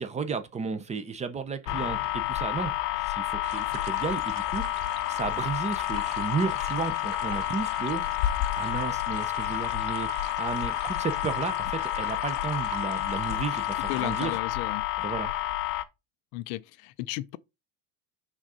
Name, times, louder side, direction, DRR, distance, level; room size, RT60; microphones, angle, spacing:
voice 1, 0.0-4.6 5.1-8.0 8.5-14.4 15.0-15.3, right 5 dB, 15° right, 0.5 m, -33 dB
sound 1, 1.7-15.8, left 15 dB, 85° left, 0.9 m, -30 dB
sound 2, 3.4-14.4, right 11 dB, 50° right, 0.8 m, -45 dB
voice 2, 13.9-14.8 16.3-17.4, left 18 dB, 55° left, 0.5 m, -34 dB
6.1 x 3.8 x 5.4 m
cardioid pair, 155°, 46 cm